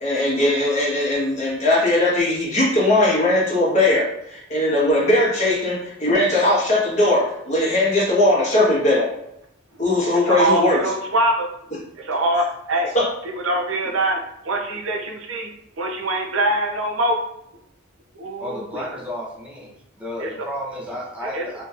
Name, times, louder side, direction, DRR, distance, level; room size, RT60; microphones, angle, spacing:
voice 1, 0.0-9.1 9.8-10.8 12.9-13.1, left 1 dB, 35° left, -6 dB, 1.2 m, -19 dB
voice 2, 10.1-11.5 11.9-12.9 13.4-15.5 15.8-17.2 18.2-18.9 20.2-20.3 21.3-21.5, right 1 dB, 85° right, 3 dB, 0.5 m, -23 dB
voice 3, 18.4-19.7 20.0-21.6, equal, 5° right, -6 dB, 0.8 m, -32 dB
3.6 x 2.8 x 2.5 m, 0.80 s
head